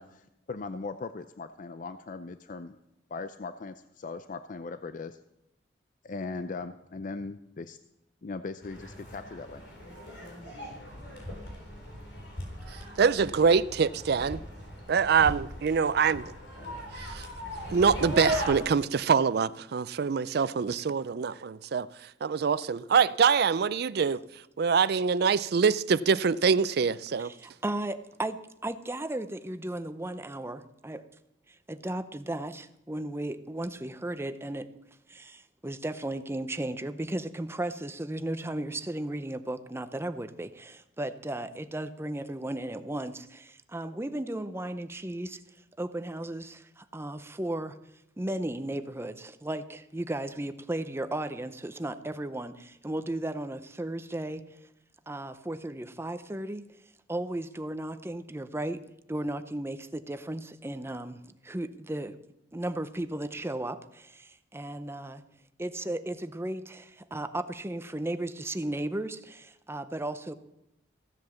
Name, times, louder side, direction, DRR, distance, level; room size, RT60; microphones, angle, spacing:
voice 1, 0.0-2.8 3.1-5.2 6.0-7.8 8.2-9.6, left 3 dB, 45° left, 0.5 m, -39 dB
sound 1, 8.6-18.6, equal, 90° left, 4.1 m, -38 dB
voice 2, 13.0-14.4 14.9-16.2 17.1-17.2 17.7-21.9 22.2-24.2 24.6-27.3, right 6 dB, 60° right, 0.4 m, -24 dB
voice 3, 27.2-31.0 31.5-34.7 35.1-45.4 45.8-47.8 48.2-54.4 55.1-56.6 57.1-58.8 59.1-61.2 61.4-62.2 62.5-65.2 65.6-70.3, right 1 dB, 15° right, 0.6 m, -35 dB
15.0 x 7.8 x 7.1 m
head